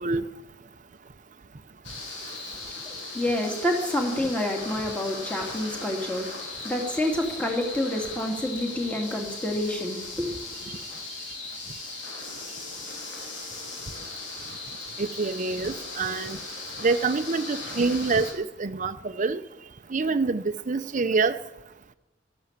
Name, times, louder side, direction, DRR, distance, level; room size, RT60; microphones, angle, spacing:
sound 1, 1.8-18.3, left 3 dB, 80° left, 3.7 m, -38 dB
voice 1, 2.5-10.8, left 1 dB, 5° left, 1 dB, 2.3 m, -29 dB
voice 2, 15.0-16.4 16.8-19.4 19.9-21.4, right 4 dB, 40° right, 10 dB, 0.6 m, -26 dB
12.5 x 11.0 x 7.4 m, 0.97 s
head